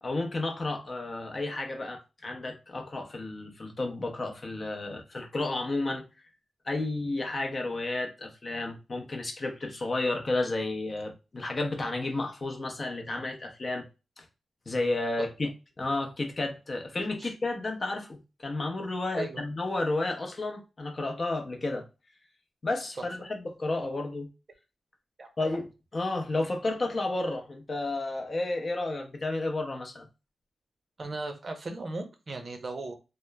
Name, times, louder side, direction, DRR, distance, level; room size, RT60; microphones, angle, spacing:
voice 1, 0.0-6.0 6.6-13.8 14.2-14.3 14.7-15.5 15.8-21.9 22.6-24.3 25.4-25.7 25.9-30.1, left 2 dB, 35° left, 0.6 m, -32 dB
voice 2, 25.2-25.5 31.0-32.9, right 2 dB, 40° right, 0.6 m, -37 dB
2.9 x 2.0 x 2.2 m
wide cardioid pair, 120°, 0 cm